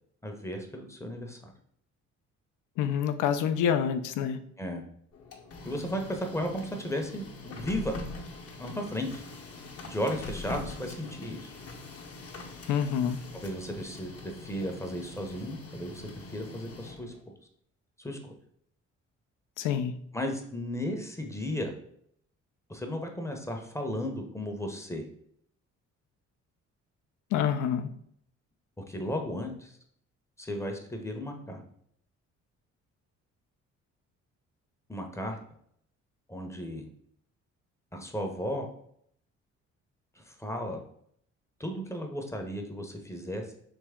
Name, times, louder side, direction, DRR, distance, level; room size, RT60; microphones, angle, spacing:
voice 1, 0.2-1.5 4.6-4.8 5.6-7.9 8.6-9.2 9.8-11.6 13.3-14.1 14.4-17.1 18.0-18.4 20.1-21.7 22.7-25.0 28.9-29.7 30.4-31.6 34.9-35.4 36.3-36.9 37.9-38.7 40.2-40.8 41.6-43.5, equal, 10° left, 3 dB, 0.6 m, -35 dB
voice 2, 2.8-4.4 12.7-13.2 19.6-20.0 27.3-27.9, left 8 dB, 85° left, 10 dB, 0.5 m, -27 dB
Printer, 5.1-17.2, left 2 dB, 50° left, 0.8 m, -43 dB
3.4 x 2.9 x 3.5 m, 0.68 s
cardioid pair, 90°, 30 cm